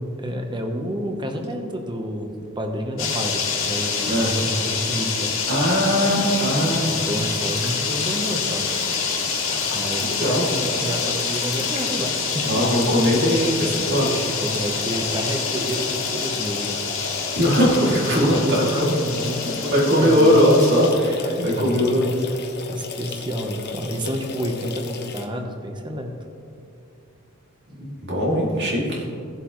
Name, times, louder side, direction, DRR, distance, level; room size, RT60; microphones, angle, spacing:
voice 1, 0.2-5.3 6.9-8.7 9.7-12.6 14.4-17.1 18.0-20.5 21.1-21.7 22.7-26.1, equal, 20° right, 4 dB, 1.0 m, -30 dB
Nightscapes Asplund, 3.0-20.9, left 5 dB, 75° left, 2.0 m, -26 dB
Filling sink with water, 5.4-25.3, left 4 dB, 55° left, 0.9 m, -36 dB
voice 2, 5.5-7.1 10.0-10.5 12.4-14.3 17.3-18.9 19.7-22.3 27.8-29.1, equal, 55° right, -4 dB, 2.6 m, -20 dB
16.5 x 7.6 x 3.2 m, 2.6 s
head